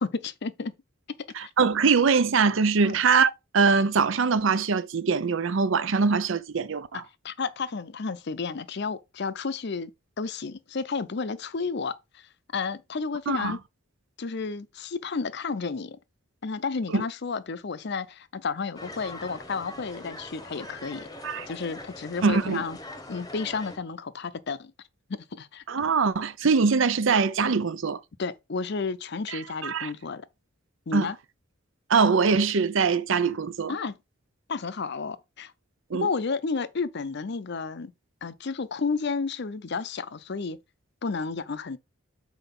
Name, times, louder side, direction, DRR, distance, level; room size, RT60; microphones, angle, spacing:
voice 1, 0.0-0.7 1.4-1.5 2.8-3.0 7.2-9.9 10.2-13.6 14.2-16.0 16.4-21.1 21.5-22.8 23.1-24.7 25.3-25.6 28.2-30.3 30.9-31.2 33.7-34.0 34.5-35.5 35.9-37.9 38.2-40.6 41.0-41.8, left 4 dB, 55° left, 0.6 m, -32 dB
voice 2, 1.4-7.0 13.3-13.6 16.9-17.0 21.2-21.5 22.2-22.6 25.7-28.0 29.3-29.9 30.9-31.1 31.9-33.7 35.9-36.1, right 5 dB, 65° right, 0.6 m, -23 dB
sound 1, 18.7-23.8, left 1 dB, 20° left, 0.9 m, -42 dB
5.9 x 4.6 x 5.2 m
head